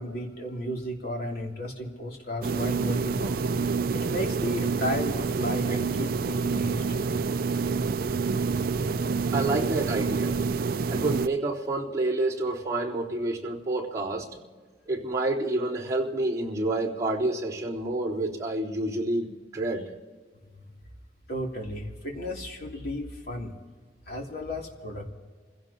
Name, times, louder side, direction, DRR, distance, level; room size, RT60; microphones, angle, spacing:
voice 1, 0.0-3.4 3.9-6.8 21.3-23.5 24.1-25.1, left 1 dB, 55° left, 0 dB, 3.0 m, -34 dB
sound 1, 2.4-11.3, right 4 dB, 55° right, 0.4 m, -27 dB
voice 2, 9.3-10.4 10.9-14.5 14.9-19.9, right 2 dB, 20° right, -8 dB, 3.7 m, -28 dB
29.0 x 16.5 x 2.9 m, 1.5 s
head